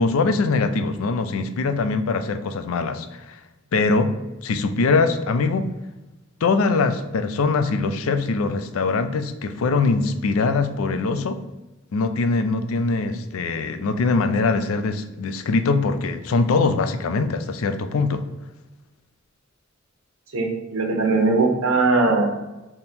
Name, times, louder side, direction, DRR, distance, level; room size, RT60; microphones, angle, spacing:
voice 1, 0.0-3.4 3.7-4.1 4.4-5.7 6.4-11.4 11.9-18.2, left 3 dB, 80° left, 9 dB, 0.4 m, -22 dB
voice 2, 20.3-22.3, right 3 dB, 85° right, 2 dB, 0.9 m, -20 dB
3.7 x 2.8 x 4.1 m, 1.1 s
head